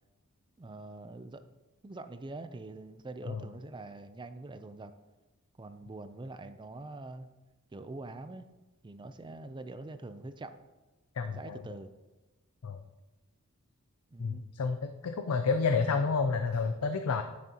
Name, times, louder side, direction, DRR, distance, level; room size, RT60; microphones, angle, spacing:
voice 1, 0.6-1.4 1.8-4.9 5.6-7.3 7.7-8.5 8.8-10.5 11.3-11.9 14.1-14.4, right 2 dB, 20° right, 10 dB, 0.4 m, -44 dB
voice 2, 11.2-11.6 12.6-12.8 14.2-17.2, left 4 dB, 80° left, 7 dB, 0.5 m, -30 dB
10.5 x 6.5 x 2.9 m, 1.2 s
head